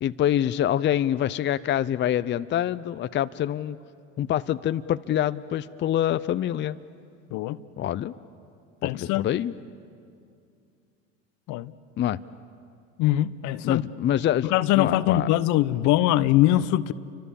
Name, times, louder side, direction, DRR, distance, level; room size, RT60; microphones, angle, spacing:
voice 1, 0.0-3.8 4.2-6.8 7.8-8.1 8.8-9.5 12.0-12.2 13.6-14.5 14.7-15.3, left 11 dB, 35° left, 0.6 m, -25 dB
voice 2, 8.8-9.3 11.5-11.7 13.0-13.8 14.4-16.9, left 14 dB, 60° left, 0.9 m, -22 dB
30.0 x 25.5 x 7.1 m
hypercardioid pair, 85°, 33 cm